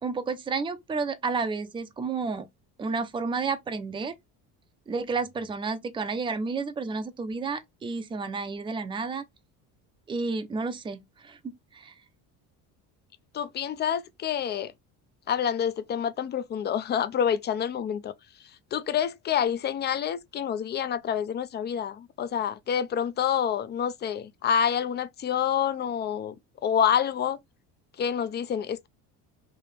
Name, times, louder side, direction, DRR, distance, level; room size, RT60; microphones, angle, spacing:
voice 1, 0.0-2.4 2.8-4.1 4.9-9.2 10.1-11.9, right 4 dB, 15° right, 0.6 m, -31 dB
voice 2, 13.3-14.7 15.3-18.1 18.7-26.3 26.6-27.4 28.0-28.9, left 8 dB, 30° left, 0.5 m, -27 dB
4.7 x 3.0 x 3.3 m
cardioid pair, 145°, 34 cm